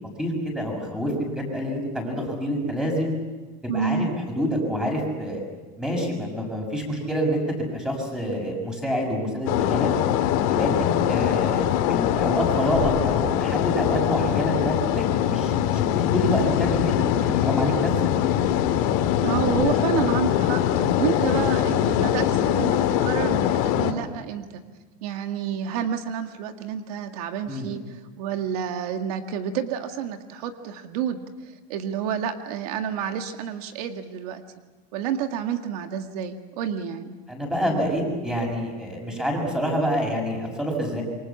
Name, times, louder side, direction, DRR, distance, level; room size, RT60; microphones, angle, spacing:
voice 1, 0.2-3.1 3.6-4.1 4.3-5.4 5.8-9.9 10.4-17.9 19.6-19.8 27.5-27.7 37.3-41.0, equal, 5° right, 1 dB, 6.5 m, -27 dB
voice 2, 3.7-4.1 19.2-24.6 25.0-27.8 28.2-31.2 31.7-34.4 34.9-37.2, right 8 dB, 85° right, 6 dB, 2.0 m, -29 dB
sound 1, 9.5-23.9, left 11 dB, 70° left, 2.6 m, -22 dB
27.5 x 24.0 x 7.2 m, 1.3 s
cardioid pair, 155°, 19 cm